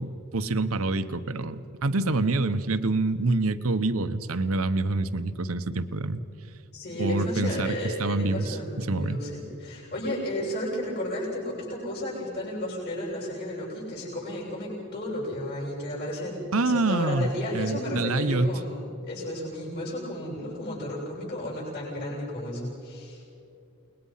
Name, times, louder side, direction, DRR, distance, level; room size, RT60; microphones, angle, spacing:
voice 1, 0.0-6.2 7.0-9.2 16.5-18.6, right 2 dB, 70° right, 11 dB, 1.0 m, -26 dB
voice 2, 6.7-23.2, left 1 dB, 45° left, -4 dB, 7.6 m, -33 dB
29.5 x 21.5 x 5.7 m, 2.6 s
head